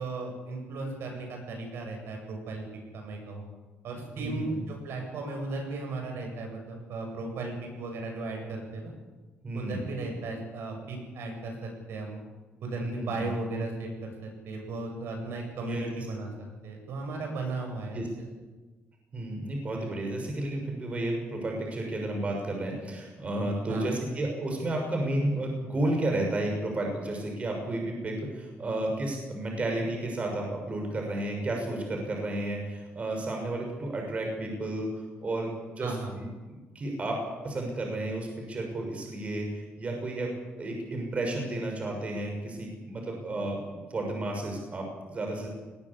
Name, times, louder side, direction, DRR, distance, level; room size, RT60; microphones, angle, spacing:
voice 1, 0.0-2.6 2.9-3.5 3.8-8.9 9.5-12.2 12.6-16.3 16.6-18.0 23.7-23.9 35.8-36.1 43.0-43.1, right 3 dB, 75° right, 2 dB, 7.7 m, -36 dB
voice 2, 4.2-4.6 9.4-9.9 12.8-13.3 15.6-15.9 17.9-18.1 19.1-34.9 35.2-40.3 40.6-45.5, right 1 dB, 30° right, 2 dB, 6.4 m, -32 dB
20.0 x 18.0 x 8.5 m, 1.2 s
cardioid pair, 125°, 4 cm